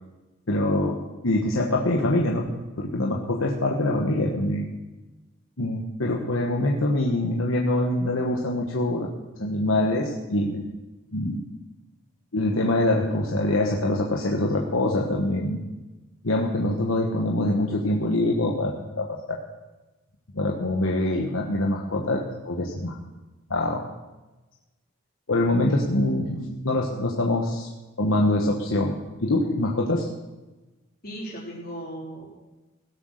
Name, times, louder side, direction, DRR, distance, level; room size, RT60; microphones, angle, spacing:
voice 1, 0.5-2.5 2.8-4.6 5.6-9.1 9.4-10.7 11.1-11.4 12.3-15.6 16.2-19.4 20.3-23.0 23.5-23.8 25.3-27.7 28.0-28.9 29.2-30.1, left 1 dB, 70° left, -1 dB, 1.3 m, -24 dB
voice 2, 31.0-32.3, right 1 dB, 45° left, -4 dB, 4.1 m, -36 dB
17.0 x 7.7 x 6.6 m, 1.1 s
head